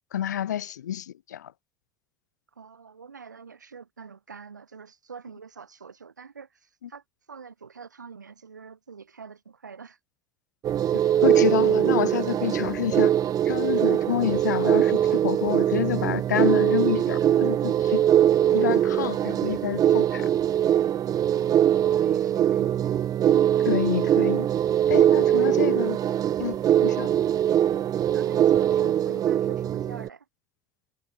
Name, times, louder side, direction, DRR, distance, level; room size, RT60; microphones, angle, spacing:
voice 1, 0.1-1.5 11.2-13.1 13.4-18.0 18.5-20.3 23.6-24.5 24.9-26.0 26.4-26.5 26.8-27.1, left 10 dB, 75° left, 0.5 m, -28 dB
voice 2, 2.5-10.0 21.3-23.0 25.4-25.7 28.1-30.3, right 5 dB, 80° right, 2.8 m, -45 dB
sound 1, 10.6-30.1, right 10 dB, 40° right, 1.1 m, -22 dB
figure-of-eight pair, 60°, 10 cm